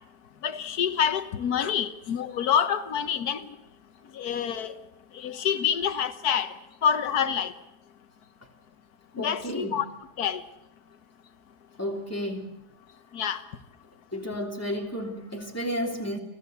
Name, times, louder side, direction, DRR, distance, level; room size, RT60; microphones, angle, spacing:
voice 1, 0.4-3.4 4.1-4.7 5.1-6.5 6.8-7.5 9.2-9.9 10.2-10.4 13.1-13.4, left 8 dB, 70° left, 1.6 m, -27 dB
voice 2, 9.2-9.9 11.8-12.7 14.1-16.2, equal, 10° left, 3.2 m, -32 dB
24.5 x 16.5 x 8.0 m
omnidirectional pair, 1.7 m